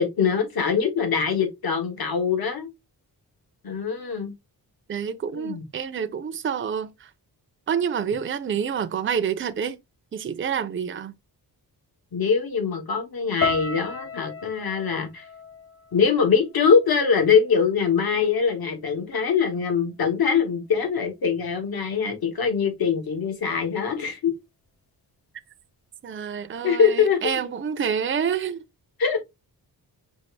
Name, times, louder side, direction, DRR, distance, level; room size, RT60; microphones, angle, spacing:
voice 1, 0.0-2.7 3.6-4.3 5.3-5.6 12.1-15.3 15.9-24.3 26.6-27.2 29.0-29.2, left 6 dB, 65° left, 1.4 m, -23 dB
voice 2, 4.9-7.1 7.7-9.8 10.1-11.1 26.0-28.6, right 7 dB, 30° right, 0.5 m, -28 dB
sound 1, 13.4-17.6 17.9-18.7 19.2-19.5, left 4 dB, 35° left, 0.6 m, -34 dB
5.3 x 2.5 x 3.2 m
wide cardioid pair, 120°, 39 cm